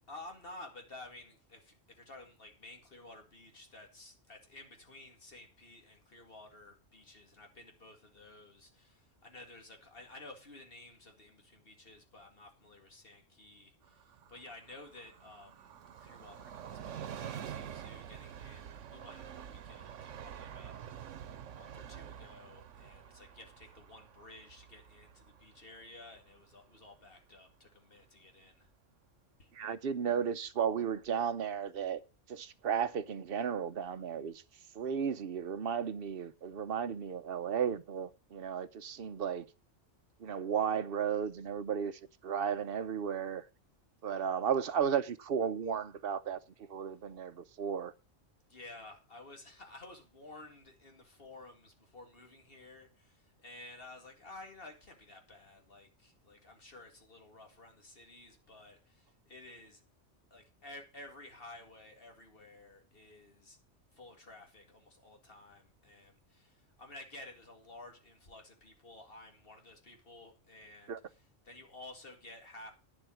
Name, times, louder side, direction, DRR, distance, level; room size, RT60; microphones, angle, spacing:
voice 1, 0.1-28.7 29.4-29.5 48.5-59.8 60.3-63.6 63.9-72.7, left 2 dB, 50° left, 2.4 m, -53 dB
Train, 13.8-27.2 27.5-27.6, right 9 dB, 85° right, 1.1 m, -48 dB
voice 2, 29.5-32.0 32.3-34.4 34.7-39.5 40.2-43.4 44.0-46.4 46.7-47.9 70.9-71.0, right 7 dB, 55° right, 0.9 m, -34 dB
9.8 x 7.5 x 6.2 m
omnidirectional pair, 1.2 m